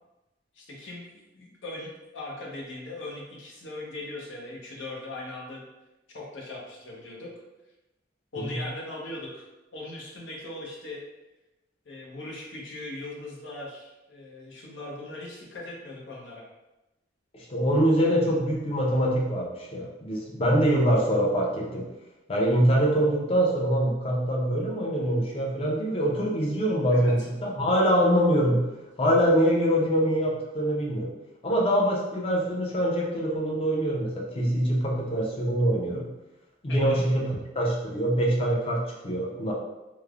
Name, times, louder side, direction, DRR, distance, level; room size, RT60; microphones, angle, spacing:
voice 1, 0.6-5.6 6.1-7.3 8.3-9.4 9.7-11.0 11.9-16.4 20.7-20.8 26.9-27.1 36.7-37.0, left 2 dB, 85° left, -2 dB, 0.6 m, -39 dB
voice 2, 17.5-21.9 22.3-28.6 29.0-31.1 31.4-36.1 36.6-39.5, equal, 30° left, -2 dB, 0.5 m, -24 dB
3.1 x 2.0 x 2.3 m, 1.0 s
head